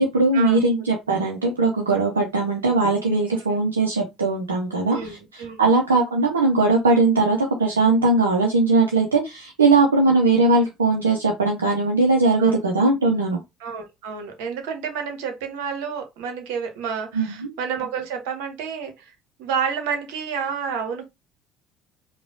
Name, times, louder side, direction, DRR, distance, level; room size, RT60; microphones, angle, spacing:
voice 1, 0.0-13.4 17.1-17.5, right 3 dB, 80° right, 0.7 m, -20 dB
voice 2, 4.9-5.6 12.4-12.6 13.6-19.1 19.4-21.0, right 6 dB, 65° right, 1.1 m, -29 dB
4.8 x 2.3 x 3.7 m
figure-of-eight pair, 55°, 0 cm